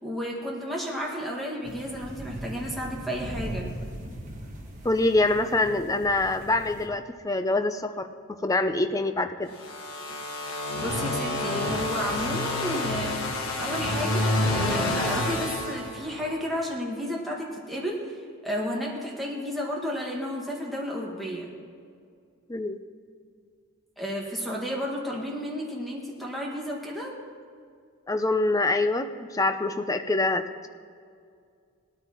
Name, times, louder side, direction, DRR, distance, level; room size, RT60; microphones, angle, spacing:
voice 1, 0.0-3.7 10.5-13.2 13.6-21.5 24.0-27.1, equal, ahead, -3 dB, 1.7 m, -32 dB
sound 1, 1.6-6.9, right 1 dB, 35° right, 1.5 m, -39 dB
voice 2, 4.8-8.1 8.4-9.5 22.5-22.8 28.1-30.7, left 2 dB, 15° left, 8 dB, 0.5 m, -25 dB
sound 2, 9.5-16.4, left 1 dB, 65° left, 1.6 m, -28 dB
19.0 x 13.5 x 3.0 m, 2.2 s
head